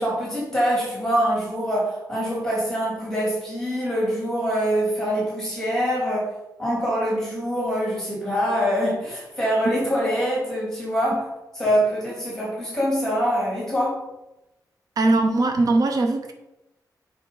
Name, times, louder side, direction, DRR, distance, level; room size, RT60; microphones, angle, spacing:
voice 1, 0.0-6.3 6.6-11.3 11.5-14.0, equal, 5° left, -5 dB, 3.2 m, -24 dB
voice 2, 15.0-16.3, right 2 dB, 60° right, 4 dB, 1.0 m, -20 dB
8.4 x 5.3 x 5.6 m, 0.95 s
wide cardioid pair, 160°, 7 cm